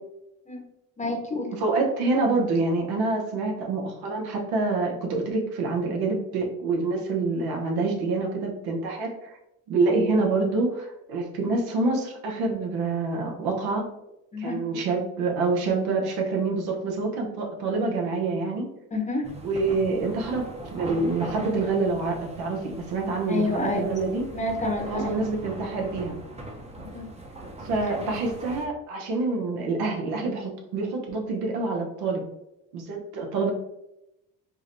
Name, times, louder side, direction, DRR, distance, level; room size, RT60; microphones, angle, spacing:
voice 1, 1.0-1.5 14.3-14.6 18.9-19.3 23.3-23.9 24.3-25.2 26.8-27.0 27.8-27.9, left 2 dB, 20° left, 1 dB, 0.8 m, -28 dB
voice 2, 1.6-9.4 9.7-13.9 14.4-18.7 19.4-24.2 24.9-26.2 27.6-32.2 32.7-33.5, right 3 dB, 85° right, 1 dB, 0.9 m, -26 dB
sound 1, 19.2-28.7, right 1 dB, 15° right, 0.6 m, -40 dB
4.7 x 2.1 x 2.6 m, 0.87 s
cardioid pair, 95°, 37 cm